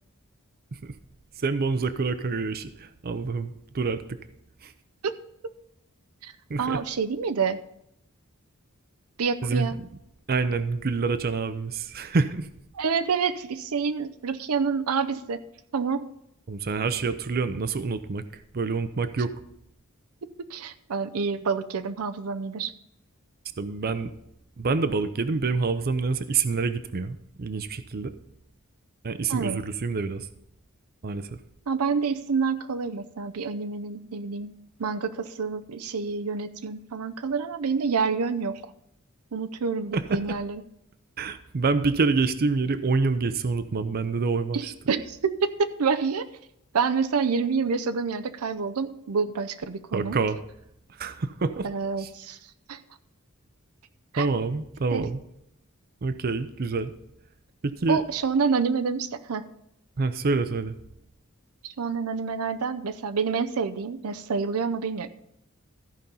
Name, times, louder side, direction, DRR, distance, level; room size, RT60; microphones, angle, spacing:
voice 1, 1.4-4.2 4.6-4.7 6.5-6.8 9.4-9.9 10.3-12.5 16.5-19.3 23.6-24.1 24.6-28.1 29.0-30.3 31.0-31.4 39.9-40.2 41.2-44.7 49.9-50.4 51.0-51.7 52.0-52.1 54.2-55.2 56.0-56.9 57.6-58.0 60.0-60.8, right 4 dB, 45° right, 12 dB, 0.5 m, -27 dB
voice 2, 6.6-7.6 9.2-9.8 12.8-15.4 15.7-16.0 20.5-22.7 29.3-29.6 31.7-34.5 34.8-38.6 39.3-40.6 44.5-46.3 46.7-50.2 51.6-52.4 52.7-52.8 54.1-54.3 54.9-55.0 57.9-59.4 61.6-65.1, right 5 dB, 90° right, 10 dB, 0.6 m, -27 dB
14.0 x 5.2 x 5.5 m, 0.78 s
head